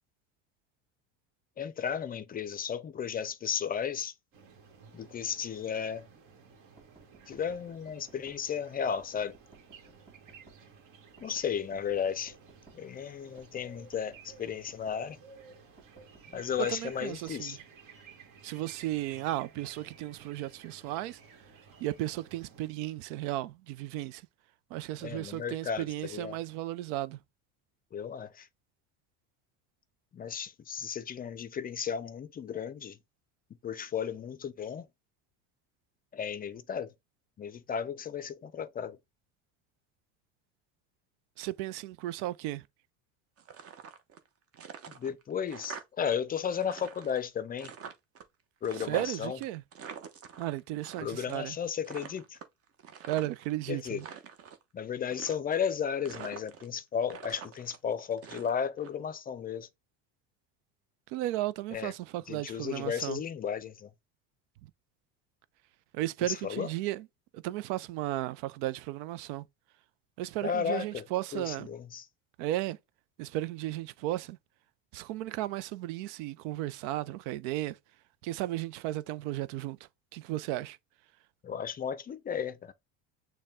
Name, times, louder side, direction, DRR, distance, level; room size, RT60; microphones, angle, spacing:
voice 1, 1.6-4.1 4.9-6.1 7.3-9.4 11.2-12.3 12.7-15.2 16.3-17.6 25.0-26.4 27.9-28.5 30.1-33.0 33.6-34.9 36.1-36.9 37.4-39.0 45.0-47.7 48.6-49.4 51.0-52.4 53.7-54.0 54.7-59.7 61.7-61.9 62.3-63.9 66.4-66.7 70.4-71.0 71.3-72.0 81.4-82.7, left 7 dB, 25° left, 0.4 m, -34 dB
sound 1, 4.3-22.7, right 5 dB, 60° right, 1.5 m, -55 dB
sound 2, 6.8-8.4 9.0-10.6 11.2-12.8 13.4-15.0 15.8-17.4, right 3 dB, 20° right, 1.9 m, -59 dB
voice 2, 16.6-17.6 18.4-21.2 21.8-24.3 24.7-27.2 41.4-42.7 48.7-49.6 50.4-51.6 53.1-54.1 61.1-63.2 65.9-67.1 67.3-69.5 70.2-71.7 72.4-72.8 73.2-74.4 74.9-77.8 78.2-79.8 80.1-80.8, right 15 dB, 75° right, 0.5 m, -34 dB
sound 3, 43.4-44.3 44.5-46.2 46.4-48.2 48.6-51.0 51.3-51.6 51.8-53.5 53.9-54.6 55.1-55.7 56.0-56.8 57.1-58.9, right 7 dB, 40° right, 0.9 m, -46 dB
6.4 x 2.3 x 3.5 m
supercardioid pair, 100°, 36 cm